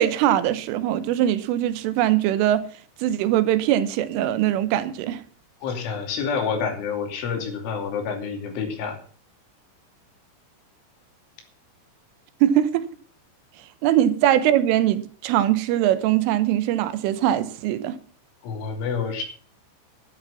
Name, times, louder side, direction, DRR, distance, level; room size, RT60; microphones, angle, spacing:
voice 1, 0.0-2.7 3.0-5.2 12.4-12.9 13.8-18.0, right 12 dB, 85° right, 3.6 m, -21 dB
voice 2, 5.6-9.0 18.4-19.2, left 6 dB, 75° left, 5.1 m, -28 dB
12.0 x 11.5 x 5.8 m
omnidirectional pair, 5.7 m